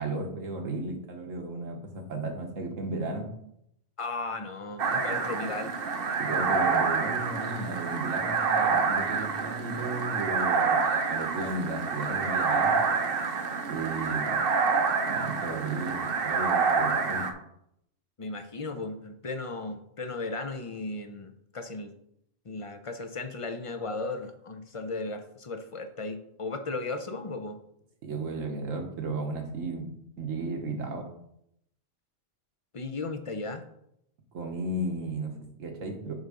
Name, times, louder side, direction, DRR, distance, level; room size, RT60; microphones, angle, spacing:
voice 1, 0.0-3.3 6.2-12.8 13.7-14.4 15.0-17.3 28.0-29.9 30.2-31.1 34.3-36.1, right 2 dB, 80° right, 3 dB, 1.6 m, -34 dB
voice 2, 4.0-5.8 18.2-21.9 22.5-27.6 32.7-33.7, left 3 dB, 40° left, 8 dB, 0.5 m, -36 dB
sound 1, 4.8-17.3, right 5 dB, 50° right, 0.9 m, -27 dB
9.1 x 3.9 x 5.0 m, 0.77 s
omnidirectional pair, 1.3 m